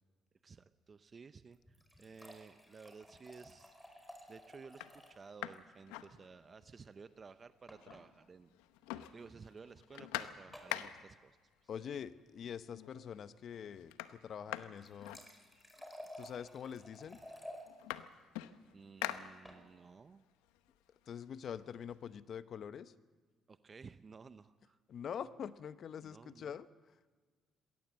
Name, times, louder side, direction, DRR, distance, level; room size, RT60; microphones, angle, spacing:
voice 1, 0.4-3.8 4.3-8.5 9.1-11.7 18.7-20.2 23.5-24.8 26.0-26.6, right 5 dB, 40° right, 12 dB, 0.7 m, -55 dB
sound 1, 1.5-5.2 5.5-5.6 5.9-6.0 7.7-8.0 9.0-9.2 10.5-10.8 14.6-17.7 19.1-19.6, equal, 5° left, 4.8 m, -53 dB
sound 2, 3.3-3.7 4.2-4.3 4.7-6.8 7.1-7.2 7.4-8.3 8.5-11.3 12.2-12.3 12.7-13.2 13.4-15.9 16.7-16.8 17.1-19.9 20.3-22.0, left 14 dB, 90° left, 0.8 m, -46 dB
voice 2, 11.7-15.2 16.2-17.2 21.1-22.9 24.9-26.7, left 8 dB, 60° left, 14 dB, 0.8 m, -45 dB
21.0 x 17.5 x 7.7 m, 1.5 s
supercardioid pair, 65°, 0 cm